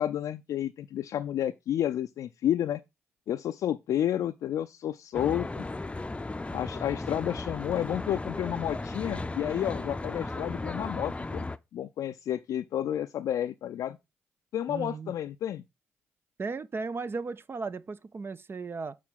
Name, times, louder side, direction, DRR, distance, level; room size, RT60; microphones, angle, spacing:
voice 1, 0.0-2.8 3.3-5.6 6.5-11.5 11.7-14.0 14.5-15.6, left 11 dB, 65° left, 0.4 m, -31 dB
Traffic noise roadway noise, 5.1-11.6, left 2 dB, 20° left, 0.6 m, -35 dB
voice 2, 14.7-15.1 16.4-19.0, right 4 dB, 40° right, 0.6 m, -36 dB
7.4 x 4.3 x 5.6 m
hypercardioid pair, 40°, 6 cm